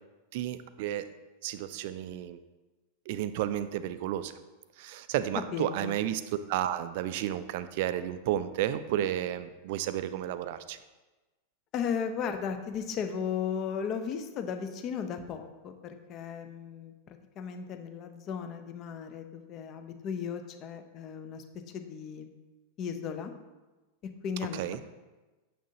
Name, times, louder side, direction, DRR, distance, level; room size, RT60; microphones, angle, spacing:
voice 1, 0.3-1.1 1.4-2.4 3.1-4.3 4.8-6.2 6.5-10.8 24.5-24.8, right 12 dB, 50° right, 13 dB, 0.3 m, -32 dB
voice 2, 5.5-5.9 11.7-21.4 21.7-22.3 22.8-23.3 24.2-24.6, left 7 dB, 35° left, 7 dB, 0.6 m, -35 dB
6.6 x 6.0 x 2.8 m, 1.2 s
figure-of-eight pair, 90°, 0 cm